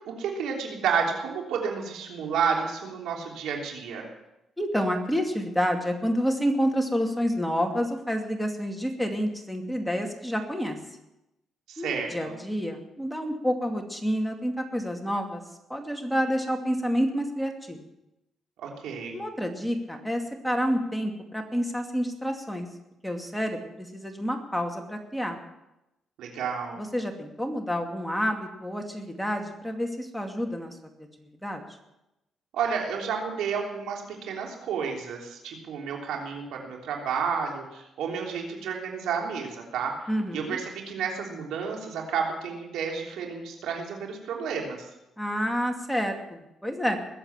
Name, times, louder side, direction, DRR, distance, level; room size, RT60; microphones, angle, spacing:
voice 1, 0.1-4.1 11.7-12.3 18.6-19.2 26.2-26.8 32.5-40.0 40.3-44.9, right 6 dB, 85° right, 0 dB, 3.4 m, -31 dB
voice 2, 4.6-10.8 11.8-15.4 15.7-17.8 19.1-22.7 23.0-25.4 26.8-31.6 40.1-40.6 45.2-47.0, equal, ahead, 3 dB, 2.4 m, -29 dB
21.0 x 7.9 x 7.4 m, 0.91 s
cardioid pair, 90°, 0 cm